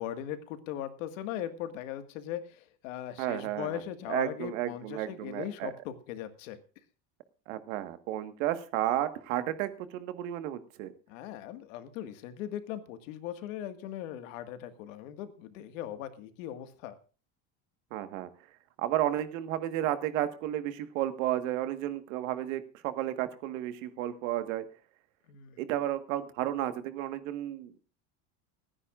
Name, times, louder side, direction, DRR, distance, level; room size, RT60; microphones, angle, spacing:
voice 1, 0.0-6.6 11.1-17.0 25.3-25.6, left 11 dB, 90° left, 9 dB, 1.9 m, -39 dB
voice 2, 3.2-3.8 4.1-5.7 7.5-10.9 17.9-18.3 18.8-24.6 25.6-27.8, right 13 dB, 80° right, 10 dB, 1.6 m, -32 dB
29.0 x 9.9 x 2.5 m, 0.36 s
cardioid pair, 165°, 38 cm